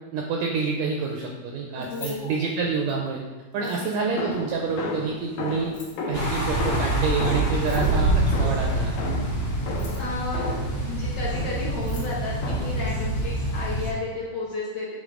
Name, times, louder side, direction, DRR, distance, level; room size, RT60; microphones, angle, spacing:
voice 1, 0.1-3.2 3.5-5.7 6.1-8.9, right 5 dB, 85° right, 0 dB, 1.6 m, -28 dB
voice 2, 1.7-2.4 3.6-3.9 10.0-15.0, left 3 dB, 70° left, -5 dB, 1.5 m, -33 dB
Keys jangling, 1.7-3.1 3.5-4.2 5.6-6.1 7.5-8.2 9.6-10.2 11.4-11.5 11.7-12.2, left 4 dB, 55° left, 2.4 m, -46 dB
sound 1, 4.2-10.8 11.3-11.8 12.4-12.9, left 2 dB, 90° left, 2.6 m, -33 dB
sound 2, 6.1-13.9, right 1 dB, 35° left, 1.1 m, -26 dB
8.5 x 3.8 x 3.7 m, 1.2 s
omnidirectional pair, 3.8 m